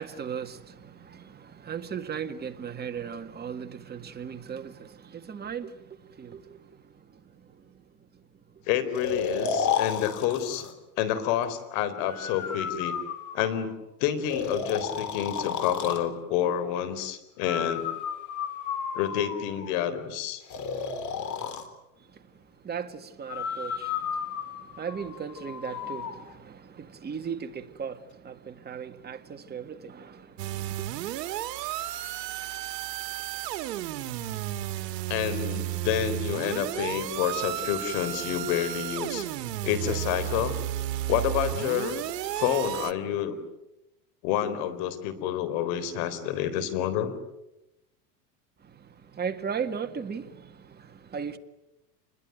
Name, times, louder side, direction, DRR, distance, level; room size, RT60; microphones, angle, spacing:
voice 1, 0.0-8.7 22.0-30.9 48.6-51.4, right 7 dB, 20° right, 1.8 m, -38 dB
voice 2, 8.7-10.7 11.0-13.0 13.3-13.7 14.0-17.9 18.9-20.4 35.1-39.3 39.6-40.5 41.1-42.1 42.3-43.4 44.2-47.1, left 10 dB, 60° left, 4.0 m, -28 dB
Breathing, 8.9-10.7 12.1-13.7 14.3-16.1 17.5-19.7 20.5-21.7 23.3-26.1, left 7 dB, 35° left, 3.7 m, -32 dB
sound 1, 30.4-42.9, right 14 dB, 80° right, 1.6 m, -33 dB
28.0 x 21.5 x 9.3 m
supercardioid pair, 130°, 49 cm